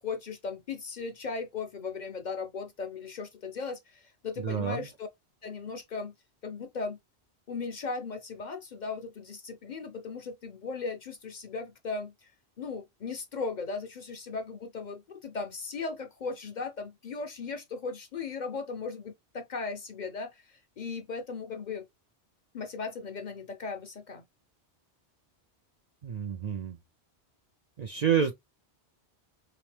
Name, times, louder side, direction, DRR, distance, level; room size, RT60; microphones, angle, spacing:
voice 1, 0.0-5.1 5.4-6.1 6.4-7.0 7.5-12.3 12.6-21.9 22.5-24.2, left 4 dB, 50° left, 0.6 m, -37 dB
voice 2, 4.4-4.9 26.0-26.8 27.8-28.4, right 8 dB, 60° right, 0.4 m, -28 dB
3.4 x 2.9 x 3.2 m
omnidirectional pair, 1.1 m